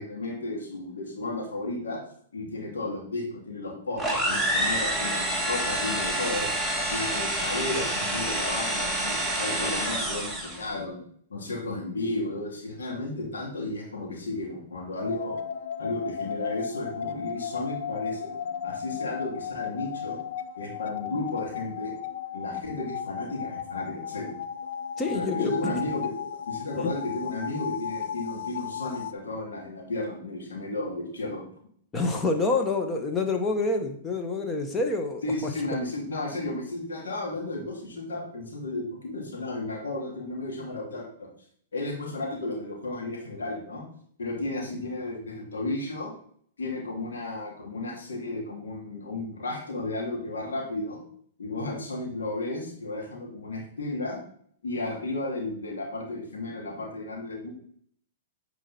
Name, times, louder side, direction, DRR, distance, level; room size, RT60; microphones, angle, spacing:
voice 1, 0.0-2.0 2.3-6.5 6.9-11.0 11.3-15.3 15.8-18.3 18.6-20.2 20.6-21.9 22.3-24.4 25.1-31.4 35.2-41.3 41.7-43.8 44.2-46.1 46.6-51.0 51.4-54.2 54.6-57.5, left 2 dB, 85° left, -2 dB, 3.1 m, -33 dB
sound 1, 4.0-10.7, right 1 dB, 5° left, 1.6 m, -28 dB
sound 2, 15.0-29.1, left 8 dB, 65° left, 0.6 m, -35 dB
voice 2, 25.0-25.5 26.8-26.9 31.9-35.2, left 3 dB, 20° left, 4 dB, 1.4 m, -27 dB
8.9 x 4.8 x 4.4 m, 0.62 s
hypercardioid pair, 125°, 0 cm